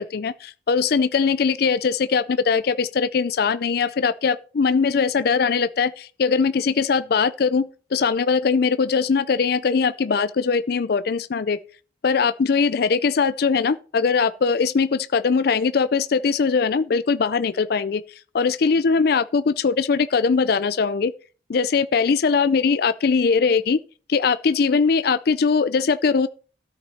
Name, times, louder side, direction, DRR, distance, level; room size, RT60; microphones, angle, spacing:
voice 1, 0.0-11.6 12.0-18.0 18.3-21.1 21.5-23.8 24.1-26.3, left 5 dB, 55° left, 0.4 m, -21 dB
13.0 x 5.8 x 4.2 m
head